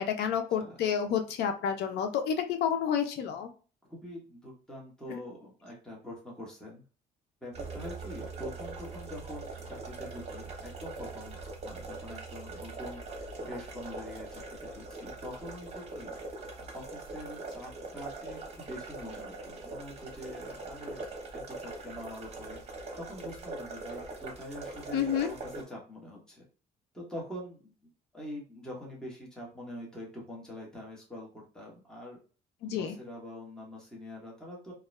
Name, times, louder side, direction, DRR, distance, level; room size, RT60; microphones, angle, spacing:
voice 1, 0.0-3.5 5.1-5.2 24.9-25.3 32.6-32.9, left 8 dB, 80° left, 5 dB, 0.5 m, -30 dB
voice 2, 3.9-6.8 7.4-11.4 11.6-16.1 16.6-26.5 26.9-27.7 28.1-32.2 32.7-34.7, left 1 dB, 5° left, -3 dB, 0.9 m, -44 dB
sound 1, 7.5-25.6, right 3 dB, 40° right, 0.9 m, -42 dB
2.4 x 2.1 x 3.1 m, 0.37 s
cardioid pair, 130°, 17 cm